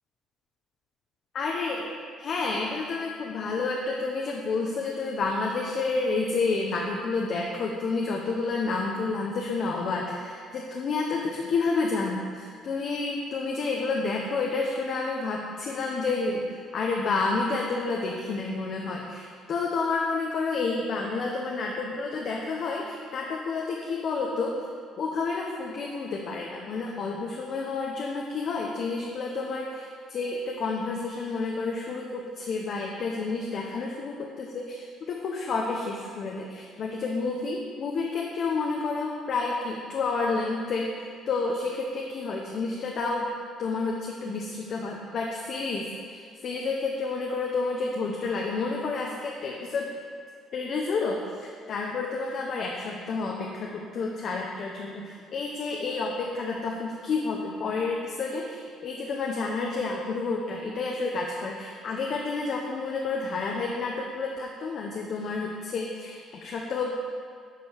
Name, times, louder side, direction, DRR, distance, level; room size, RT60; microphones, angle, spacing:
voice 1, 1.3-1.9 2.2-24.5 25.0-40.9 41.3-43.3 43.6-49.9 50.5-66.9, left 3 dB, 45° left, -1 dB, 0.9 m, -30 dB
10.5 x 5.1 x 6.4 m, 2.1 s
cardioid pair, 145°, 0 cm